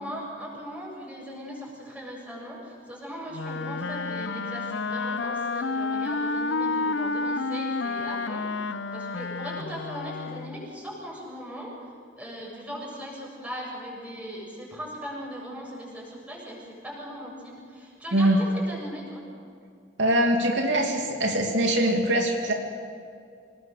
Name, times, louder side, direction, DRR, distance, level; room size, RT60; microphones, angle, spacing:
voice 1, 0.0-8.5 8.9-11.7 12.2-19.2, equal, 10° right, -3 dB, 7.3 m, -39 dB
Wind instrument woodwind instrument, 3.3-10.7, left 3 dB, 80° left, 0.7 m, -30 dB
voice 2, 20.0-22.5, right 1 dB, 80° right, 1 dB, 2.7 m, -22 dB
26.5 x 20.0 x 6.7 m, 2.4 s
head